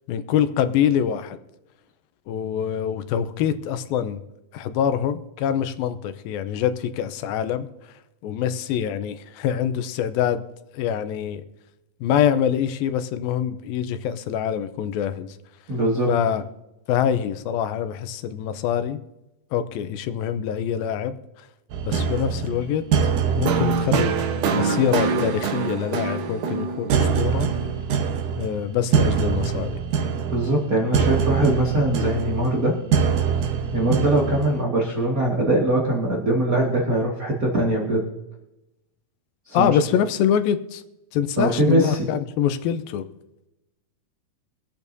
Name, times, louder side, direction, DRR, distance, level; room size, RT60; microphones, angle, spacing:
voice 1, 0.1-1.4 2.3-4.2 4.5-7.7 8.2-10.4 10.7-11.4 12.0-15.3 16.1-16.4 16.9-19.0 19.5-21.2 21.8-22.8 23.4-24.2 24.5-27.5 28.4-29.8 39.5-40.8 41.1-43.0, left 9 dB, 90° left, 11 dB, 2.6 m, -24 dB
voice 2, 15.7-16.1 27.3-27.5 30.3-32.8 33.7-38.0 39.5-39.8 41.4-42.1, right 1 dB, 35° right, -3 dB, 1.7 m, -22 dB
sound 1, 21.7-34.6, right 6 dB, 70° right, 2.5 m, -24 dB
24.5 x 8.7 x 2.7 m, 0.94 s
omnidirectional pair, 4.1 m